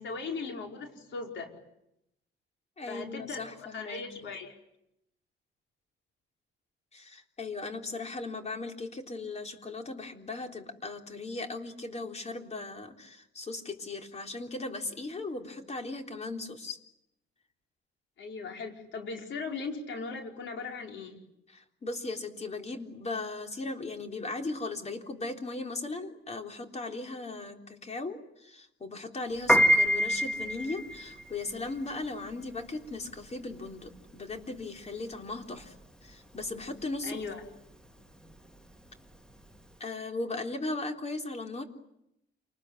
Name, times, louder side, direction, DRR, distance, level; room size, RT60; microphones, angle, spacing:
voice 1, 0.0-1.5 2.9-4.5 18.2-21.2 37.0-37.4, left 4 dB, 70° left, 3 dB, 5.0 m, -38 dB
voice 2, 2.8-4.3 6.9-16.8 21.5-35.7 36.0-37.2 39.8-41.6, left 3 dB, 35° left, 4 dB, 3.7 m, -37 dB
Piano, 29.3-39.7, equal, 5° left, 2.2 m, -29 dB
28.5 x 20.5 x 9.8 m, 0.82 s
cardioid pair, 90°, 20 cm